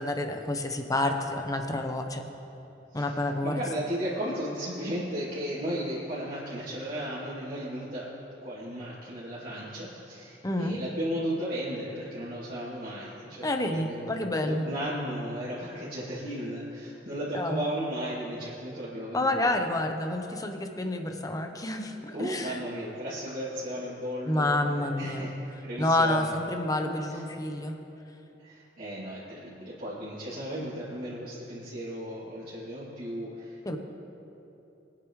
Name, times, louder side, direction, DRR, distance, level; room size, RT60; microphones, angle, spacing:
voice 1, 0.0-2.3 2.9-3.6 10.4-10.8 13.4-14.7 17.3-17.7 19.1-22.6 24.3-25.3 25.8-27.8 33.6-33.8, left 1 dB, 20° left, 5 dB, 0.9 m, -29 dB
voice 2, 3.4-8.1 8.4-19.4 22.1-25.3 25.6-26.3 26.9-27.2 28.4-33.8, equal, 55° right, -11 dB, 2.9 m, -35 dB
22.0 x 9.9 x 3.2 m, 3.0 s
head